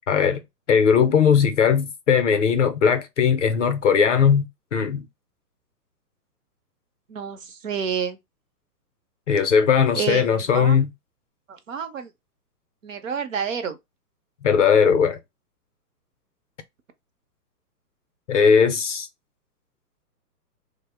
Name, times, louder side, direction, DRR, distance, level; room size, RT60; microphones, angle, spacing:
voice 1, 0.1-0.4 0.7-5.1 9.3-10.9 14.4-15.2 18.3-19.1, left 7 dB, 50° left, 0.5 m, -19 dB
voice 2, 7.1-8.2 9.9-10.3 10.5-10.8 11.5-12.1 12.8-13.8, right 7 dB, 55° right, 0.6 m, -29 dB
3.0 x 2.0 x 3.3 m
hypercardioid pair, 165°, 48 cm